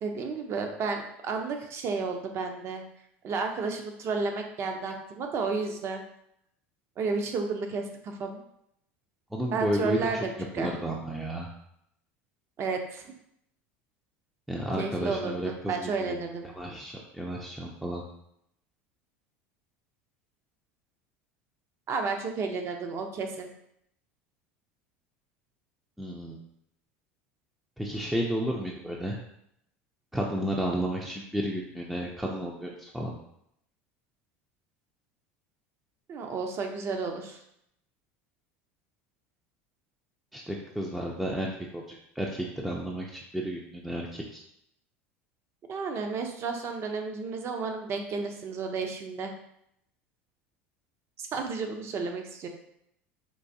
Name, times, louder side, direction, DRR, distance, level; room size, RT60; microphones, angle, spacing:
voice 1, 0.0-2.8 3.2-6.0 7.0-8.4 9.5-10.8 12.6-13.0 14.8-16.5 21.9-23.5 36.1-37.4 45.7-49.3 51.2-52.5, right 4 dB, 45° right, 4 dB, 0.6 m, -32 dB
voice 2, 9.3-10.1 10.6-11.5 14.5-16.2 16.6-18.0 26.0-26.4 27.8-29.2 30.1-33.1 40.3-44.4, right 1 dB, 5° right, -2 dB, 0.5 m, -32 dB
4.6 x 2.5 x 2.7 m, 0.76 s
supercardioid pair, 95°, 6 cm